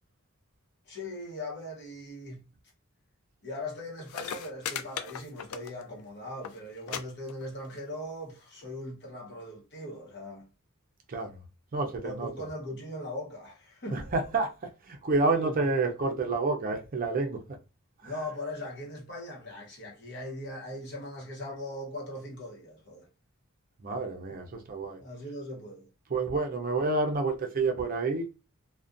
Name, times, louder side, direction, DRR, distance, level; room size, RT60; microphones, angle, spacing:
voice 1, 0.9-2.4 3.4-10.5 12.0-14.0 15.3-15.7 18.0-23.1 25.0-25.9, left 1 dB, 55° left, 0.9 m, -40 dB
sound 1, 3.8-6.0 6.3-6.5 6.9-7.0 7.3-7.8 8.6-8.7, left 8 dB, 85° left, 0.3 m, -37 dB
voice 2, 11.7-12.3 13.9-17.4 18.0-18.1 23.8-25.0 26.1-28.3, right 3 dB, 40° right, 0.5 m, -29 dB
2.4 x 2.1 x 2.4 m
head